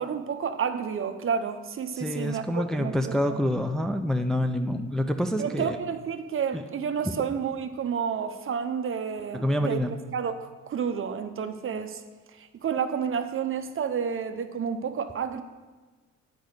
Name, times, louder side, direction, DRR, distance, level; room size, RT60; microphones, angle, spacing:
voice 1, 0.0-3.2 5.4-9.8 10.1-12.0 12.4-15.4, right 7 dB, 45° right, 9 dB, 0.7 m, -30 dB
voice 2, 2.0-5.8 6.5-6.6 9.4-9.9, equal, ahead, 5 dB, 0.4 m, -27 dB
8.4 x 5.1 x 6.5 m, 1.3 s
cardioid pair, 90°, 30 cm